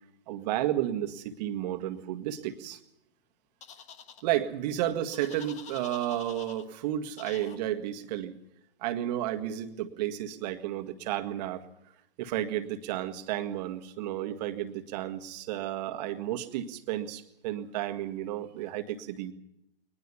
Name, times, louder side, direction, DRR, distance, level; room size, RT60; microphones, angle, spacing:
voice 1, 0.3-2.8 4.2-8.3 8.8-11.6 12.2-19.3, right 12 dB, 40° right, 7 dB, 1.8 m, -32 dB
sound 1, 3.6-4.2 5.1-6.6 7.2-7.6, left 7 dB, 20° left, 1.5 m, -47 dB
22.0 x 20.0 x 7.0 m, 0.79 s
figure-of-eight pair, 115°, 32 cm